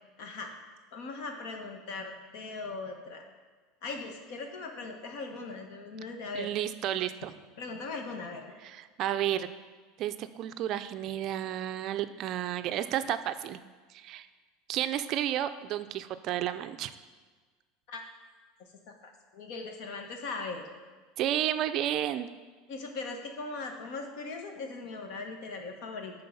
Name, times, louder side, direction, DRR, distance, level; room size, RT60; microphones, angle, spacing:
voice 1, 0.2-0.5 0.9-3.2 3.8-6.5 7.6-8.4 17.9-18.0 19.3-20.7 22.7-26.1, left 3 dB, 65° left, 4 dB, 1.3 m, -39 dB
voice 2, 6.3-7.3 8.6-9.5 10.0-13.6 13.9-14.3 14.7-16.9 21.2-22.3, right 11 dB, 45° right, 11 dB, 0.4 m, -31 dB
11.0 x 3.9 x 5.6 m, 1.4 s
supercardioid pair, 140°, 0 cm